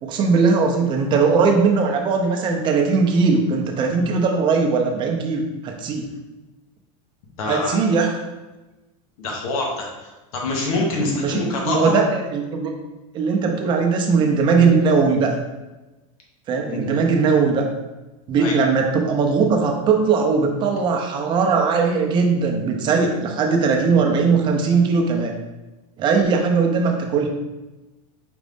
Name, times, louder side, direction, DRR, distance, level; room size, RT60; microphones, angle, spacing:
voice 1, 0.0-6.1 7.4-8.2 11.2-12.7 13.1-15.4 16.5-17.7 18.3-25.3 26.0-27.3, right 4 dB, 25° right, 2 dB, 0.6 m, -19 dB
voice 2, 7.4-7.8 9.2-11.9 16.7-17.0 18.4-18.5, left 2 dB, 80° left, -1 dB, 1.1 m, -25 dB
5.0 x 2.5 x 3.5 m, 1.1 s
supercardioid pair, 155°, 18 cm